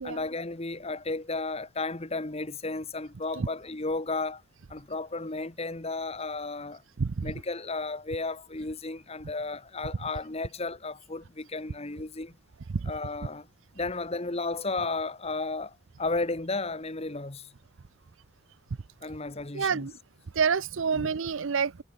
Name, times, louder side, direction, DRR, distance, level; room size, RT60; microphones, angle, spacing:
voice 1, 0.0-4.4 4.7-6.8 7.2-12.3 12.8-13.5 13.7-17.5 19.0-19.9 20.9-21.1, left 3 dB, 30° left, 1.2 m, -33 dB
voice 2, 7.0-7.3 12.7-12.9 19.5-19.9 20.3-21.8, right 5 dB, 60° right, 0.5 m, -28 dB
head